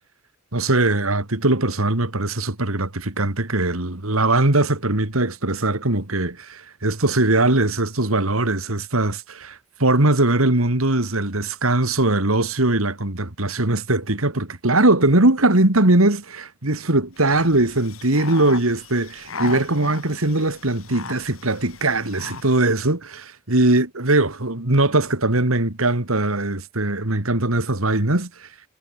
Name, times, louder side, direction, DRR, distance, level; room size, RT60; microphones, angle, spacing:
voice 1, 0.5-28.5, right 2 dB, 80° right, 2.9 m, -20 dB
sound 1, 17.2-22.7, left 4 dB, 80° left, 4.2 m, -37 dB
head